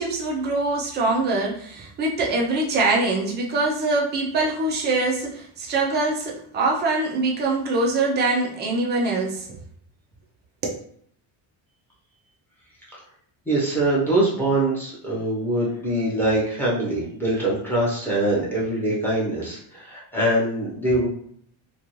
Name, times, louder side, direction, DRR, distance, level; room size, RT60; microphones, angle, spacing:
voice 1, 0.0-9.5 10.6-10.8, right 2 dB, 25° right, -1 dB, 0.3 m, -23 dB
voice 2, 13.5-21.1, right 1 dB, 5° left, -6 dB, 0.7 m, -23 dB
2.5 x 2.2 x 2.9 m, 0.62 s
cardioid pair, 170°, 49 cm